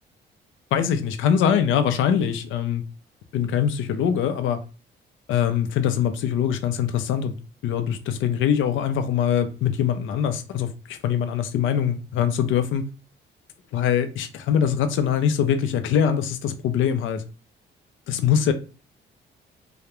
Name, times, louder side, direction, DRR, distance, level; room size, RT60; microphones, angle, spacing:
voice 1, 0.7-2.8 3.3-4.6 5.3-7.3 7.6-12.8 13.7-17.2 18.1-18.5, left 8 dB, 80° left, 0.4 m, -23 dB
2.3 x 2.0 x 2.9 m
cardioid pair, 90°, 20 cm